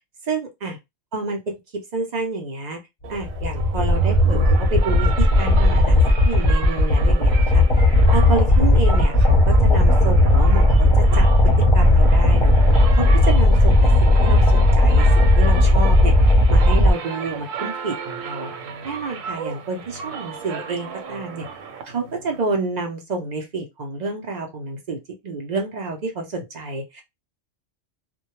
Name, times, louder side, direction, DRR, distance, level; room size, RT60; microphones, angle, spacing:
voice 1, 0.2-0.8 1.1-1.6 1.9-2.8 3.1-7.6 8.1-10.9 11.1-11.3 11.7-12.5 12.9-18.5 18.8-21.5 21.8-27.0, right 3 dB, 60° right, 0.4 m, -29 dB
sound 1, 3.0-22.4, right 6 dB, 90° right, 1.0 m, -34 dB
sound 2, 3.1-16.9, left 1 dB, 35° left, 0.6 m, -15 dB
2.1 x 2.1 x 2.9 m
omnidirectional pair, 1.3 m